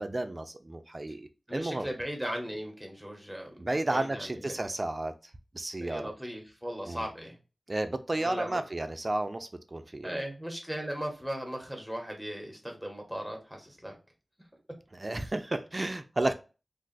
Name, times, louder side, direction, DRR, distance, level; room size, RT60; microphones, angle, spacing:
voice 1, 0.0-1.9 3.6-5.1 5.5-6.0 6.9-7.1 7.7-10.2 14.9-16.3, right 2 dB, 40° right, 0.4 m, -32 dB
voice 2, 1.5-4.5 5.8-7.4 8.1-8.6 10.0-13.9, equal, ahead, 1.1 m, -37 dB
2.5 x 2.4 x 3.9 m
wide cardioid pair, 70°, 0 cm